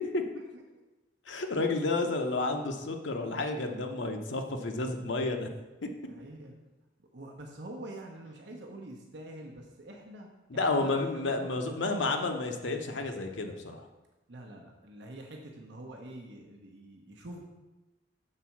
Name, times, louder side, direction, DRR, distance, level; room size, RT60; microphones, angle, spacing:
voice 1, 1.3-5.5 5.8-5.9 10.5-13.8, left 3 dB, 75° left, 5 dB, 0.8 m, -31 dB
voice 2, 6.0-6.6 7.1-12.3 14.3-17.4, right 1 dB, 65° right, 1 dB, 0.9 m, -46 dB
6.6 x 4.1 x 5.8 m, 1.1 s
head